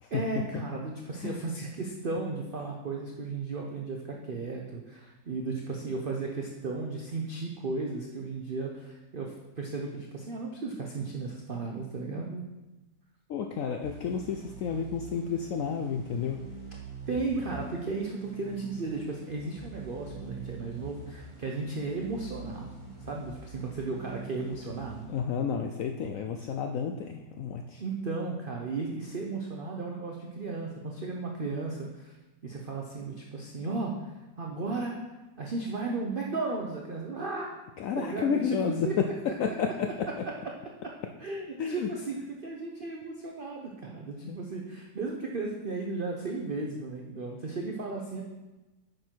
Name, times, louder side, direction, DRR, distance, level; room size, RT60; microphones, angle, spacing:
voice 1, 0.1-12.4 17.1-22.7 23.0-25.1 27.8-32.1 32.4-35.0 35.4-37.5 38.0-38.6 38.8-39.0 40.3-40.4 40.8-40.9 41.2-48.2, right 3 dB, 50° right, 0 dB, 0.6 m, -35 dB
voice 2, 13.3-16.4 25.1-27.8 37.8-39.0 39.4-40.1 41.6-41.9 44.3-44.4, left 6 dB, 80° left, 4 dB, 0.7 m, -31 dB
sound 1, 13.8-25.7, right 4 dB, 15° right, 1.8 m, -45 dB
9.1 x 6.3 x 4.5 m, 1.1 s
omnidirectional pair, 2.0 m